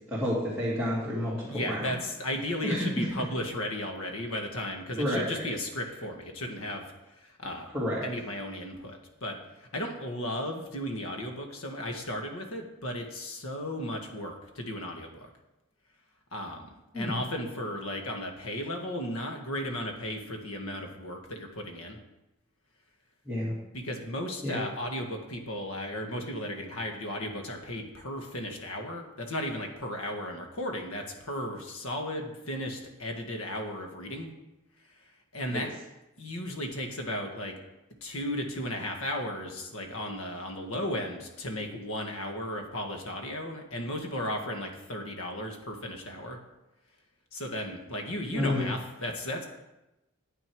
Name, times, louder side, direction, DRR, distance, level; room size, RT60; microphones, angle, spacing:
voice 1, 0.1-1.8 2.6-3.1 5.0-5.2 7.7-8.0 16.9-17.2 23.3-23.5 24.4-24.6 35.5-35.6 48.3-48.7, left 1 dB, 5° right, -11 dB, 2.5 m, -29 dB
voice 2, 1.5-7.7 8.0-15.3 16.3-16.7 16.9-22.0 23.7-34.3 35.0-35.1 35.3-35.7 36.2-37.5 38.0-46.4 47.3-49.5, left 1 dB, 75° left, 3 dB, 1.8 m, -35 dB
9.6 x 9.3 x 4.8 m, 0.96 s
head